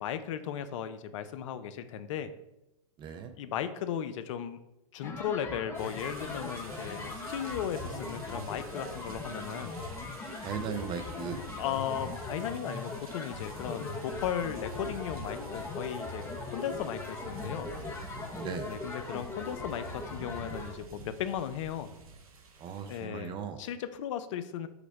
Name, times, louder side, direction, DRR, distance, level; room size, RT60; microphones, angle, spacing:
voice 1, 0.0-2.3 3.4-4.6 4.9-9.7 11.6-16.2 16.5-17.7 18.6-21.9 22.9-24.7, left 9 dB, 55° left, 11 dB, 0.4 m, -36 dB
voice 2, 3.0-3.3 9.3-9.5 10.4-11.4 18.3-18.7 22.6-23.6, right 7 dB, 25° right, 8 dB, 0.4 m, -38 dB
sound 1, 5.0-20.7, left 3 dB, 15° left, 0.6 m, -40 dB
sound 2, 5.7-23.1, right 4 dB, 75° right, 0.8 m, -50 dB
4.9 x 2.1 x 4.6 m, 0.90 s
hypercardioid pair, 110°, 19 cm